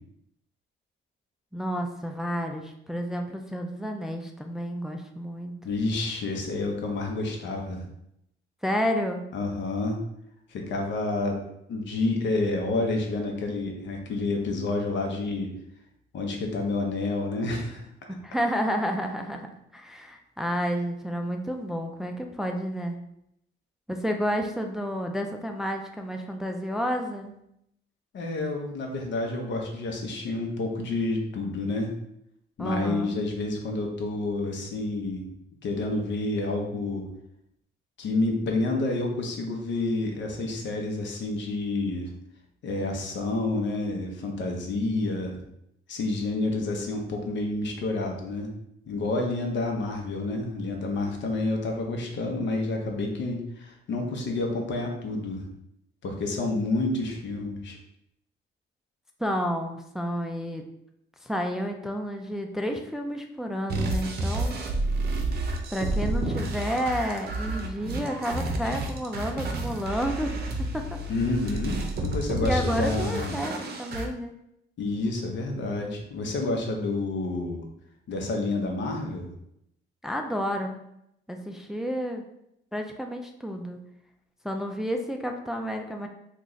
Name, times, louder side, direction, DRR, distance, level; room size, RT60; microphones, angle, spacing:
voice 1, 1.5-5.5 8.6-9.2 18.2-19.5 19.7-23.0 23.9-27.3 32.6-33.1 59.2-60.6 61.2-64.5 65.7-70.4 70.7-71.0 72.4-74.3 80.0-80.8 81.3-82.2 82.7-83.8 84.4-86.1, equal, ahead, 3 dB, 0.3 m, -30 dB
voice 2, 5.6-7.8 9.3-10.0 10.5-11.4 11.7-15.5 16.1-17.8 28.1-31.9 32.6-35.3 35.6-37.1 38.0-42.1 42.6-45.4 45.9-48.5 48.9-55.5 56.0-57.8 71.1-73.4 74.8-77.7 78.1-79.3, left 2 dB, 65° left, 2 dB, 0.8 m, -29 dB
sound 1, 63.7-74.1, right 2 dB, 50° right, 0.6 m, -30 dB
3.0 x 2.4 x 3.9 m, 0.78 s
cardioid pair, 90°, 20 cm